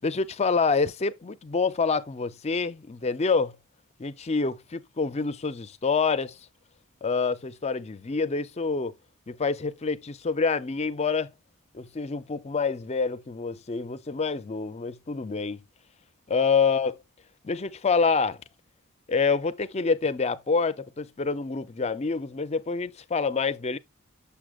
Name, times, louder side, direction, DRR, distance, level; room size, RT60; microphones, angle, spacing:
voice 1, 0.0-3.6 4.0-6.4 7.0-8.9 9.3-11.3 11.7-15.6 16.3-17.0 17.4-18.4 19.1-23.8, left 4 dB, 30° left, 0.5 m, -27 dB
6.8 x 6.3 x 2.3 m
head